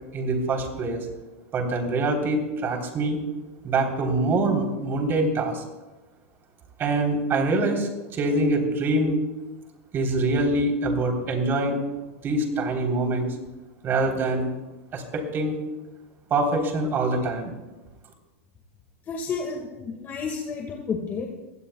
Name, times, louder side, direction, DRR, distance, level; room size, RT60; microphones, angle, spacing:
voice 1, 0.1-1.1 1.5-3.2 3.6-5.6 6.8-9.2 9.9-11.8 12.2-13.4 13.8-14.5 14.9-15.6 16.3-17.5, right 2 dB, 30° right, 2 dB, 3.5 m, -24 dB
voice 2, 19.1-21.3, left 5 dB, 25° left, 2 dB, 1.8 m, -31 dB
22.5 x 17.5 x 2.3 m, 1.1 s
hypercardioid pair, 125°, 7 cm